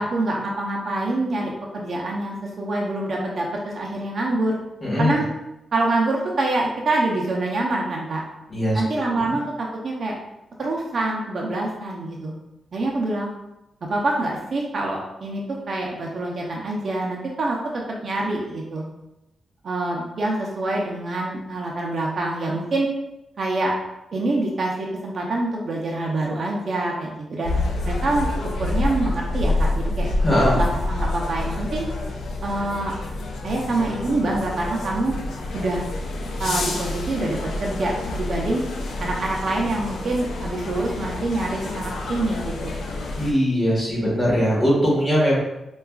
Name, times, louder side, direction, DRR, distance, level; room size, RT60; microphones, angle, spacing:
voice 1, 0.0-4.6 5.0-5.3 5.7-8.2 8.7-10.2 10.6-12.3 12.7-13.3 13.9-18.8 19.6-22.9 23.4-23.7 24.1-27.5 27.8-28.3 28.6-30.1 30.4-31.9 32.4-32.9 33.4-35.1 35.5-35.8 36.4-38.6 39.0-42.9, right 2 dB, 50° right, -1 dB, 0.5 m, -25 dB
voice 2, 4.8-5.1 8.5-9.3 30.2-30.5 43.2-45.4, equal, 15° left, -6 dB, 1.3 m, -21 dB
sound 1, 27.4-43.3, left 2 dB, 80° left, 0.5 m, -28 dB
4.6 x 2.3 x 2.3 m, 0.90 s
wide cardioid pair, 120°, 0 cm